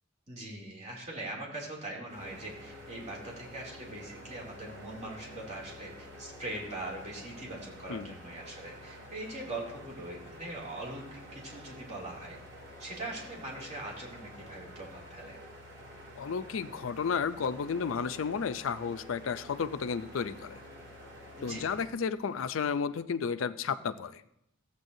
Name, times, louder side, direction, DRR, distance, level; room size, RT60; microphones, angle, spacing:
voice 1, 0.3-12.4 12.8-15.4 21.4-21.7, right 1 dB, 35° right, -3 dB, 2.6 m, -41 dB
sound 1, 2.1-21.9, equal, 60° right, 2.6 m, -49 dB
voice 2, 16.2-20.6 21.4-24.2, left 6 dB, 75° left, 12 dB, 0.4 m, -32 dB
14.0 x 8.1 x 2.7 m, 0.77 s
head